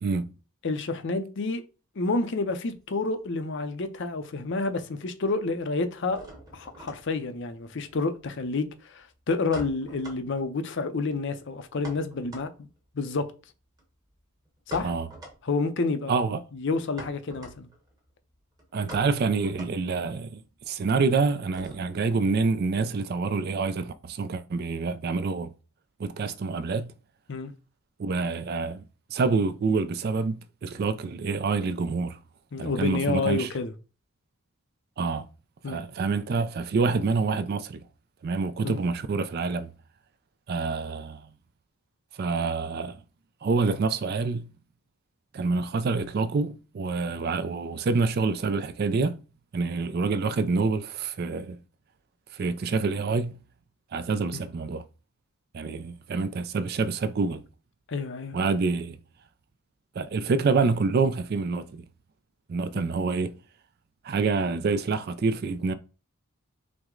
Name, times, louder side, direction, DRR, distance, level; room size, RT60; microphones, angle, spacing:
voice 1, 0.6-1.6 2.0-6.2 6.5-12.5 12.9-13.3 14.7-14.9 15.4-16.1 16.5-17.7 27.3-27.5 32.5-33.7 35.6-35.8 38.6-38.8 54.3-54.4 57.9-58.4 62.9-63.0, left 3 dB, 55° left, 0.5 m, -29 dB
sound 1, 2.4-3.9 4.1-4.8 5.1-22.1, right 1 dB, 15° right, 1.0 m, -47 dB
voice 2, 16.1-16.4 18.7-20.4 20.7-25.5 26.0-26.9 28.0-28.8 29.1-32.2 32.6-33.5 35.0-35.3 35.7-37.8 38.2-39.7 40.5-41.2 42.2-43.0 43.4-44.5 45.3-49.2 49.5-51.6 52.3-53.4 53.9-54.8 55.5-57.4 58.3-59.0 59.9-61.8 62.5-63.3 64.0-65.7, right 4 dB, 45° right, 0.3 m, -27 dB
5.8 x 2.1 x 3.7 m
head